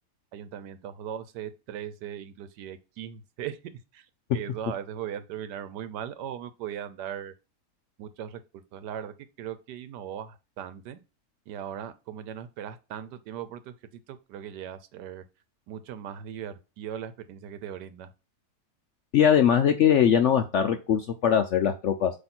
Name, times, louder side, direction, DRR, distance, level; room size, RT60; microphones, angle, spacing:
voice 1, 0.3-3.6 3.9-4.1 4.3-7.3 8.0-8.4 8.7-11.0 11.5-15.2 15.7-18.1, right 9 dB, 85° right, 1.3 m, -38 dB
voice 2, 19.1-22.1, left 8 dB, 70° left, 0.7 m, -21 dB
7.8 x 3.1 x 4.3 m
omnidirectional pair, 1.8 m